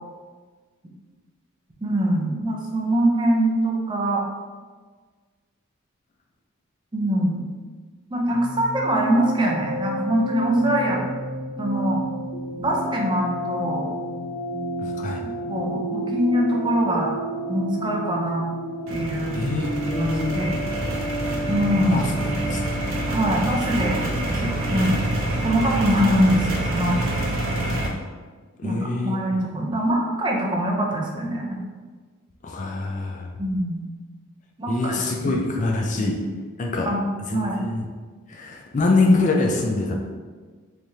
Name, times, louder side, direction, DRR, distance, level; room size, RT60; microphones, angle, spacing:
voice 1, 1.8-4.2 6.9-7.5 8.1-11.0 11.6-12.0 12.6-13.9 15.2-17.2 17.5-18.4 18.9-19.3 20.0-20.6 21.5-22.1 23.1-24.0 24.4-25.0 25.4-27.0 28.6-28.8 29.0-31.6 33.4-33.9 34.6-34.9 35.2-35.3 36.9-37.0 37.3-37.6, right 1 dB, 20° right, -1 dB, 0.5 m, -23 dB
sound 1, 8.3-27.8, right 1 dB, 75° left, 0.9 m, -31 dB
voice 2, 14.8-15.2 19.3-20.5 21.9-22.1 22.5-22.6 24.7-25.2 28.6-29.2 32.4-33.3 34.7-36.2 36.6-36.9 37.3-37.9 38.3-40.0, left 3 dB, 35° left, 0 dB, 0.4 m, -24 dB
sound 2, 18.9-27.9, right 1 dB, 75° right, 0.7 m, -27 dB
3.5 x 3.2 x 2.7 m, 1.4 s
head